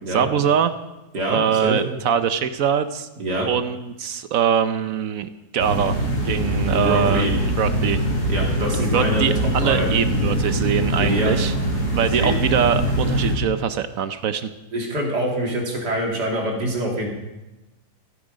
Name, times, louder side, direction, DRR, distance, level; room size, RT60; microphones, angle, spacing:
voice 1, 0.1-0.7 1.3-3.1 3.4-6.0 6.2-7.3 7.6-8.0 8.8-11.5 12.0-14.5, right 8 dB, 65° right, 11 dB, 1.1 m, -22 dB
voice 2, 1.1-1.8 3.2-3.5 6.7-7.3 8.3-9.3 9.6-9.9 11.0-11.3 11.9-12.3 14.7-17.1, right 1 dB, 80° right, -1 dB, 3.3 m, -25 dB
sound 1, 5.6-13.3, right 1 dB, 70° left, 4.1 m, -23 dB
14.5 x 12.5 x 5.2 m, 1.0 s
omnidirectional pair, 1.7 m